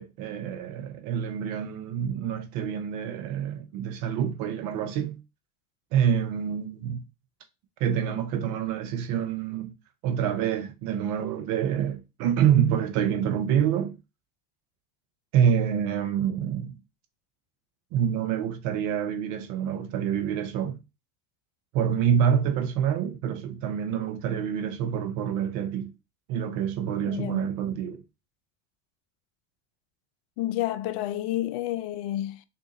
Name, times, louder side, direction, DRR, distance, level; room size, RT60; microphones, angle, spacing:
voice 1, 0.0-5.2 5.9-7.0 7.8-9.7 10.0-13.9 15.3-16.7 17.9-20.8 21.7-25.9 26.3-28.0, right 8 dB, 55° right, 0.6 m, -27 dB
voice 2, 27.1-27.4 30.4-32.4, left 13 dB, 60° left, 0.5 m, -30 dB
3.6 x 2.6 x 2.5 m
hypercardioid pair, 75°, 37 cm